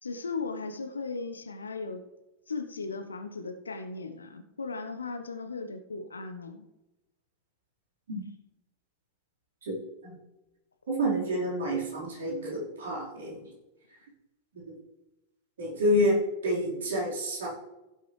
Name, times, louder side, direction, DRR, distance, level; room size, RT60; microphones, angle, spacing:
voice 1, 0.0-2.0 2.5-6.6, left 4 dB, 75° left, 7 dB, 1.0 m, -37 dB
voice 2, 10.9-13.5 14.7-14.8 15.6-17.5, equal, 65° right, -5 dB, 4.4 m, -28 dB
15.5 x 8.1 x 3.3 m, 0.98 s
figure-of-eight pair, 90°, 0 cm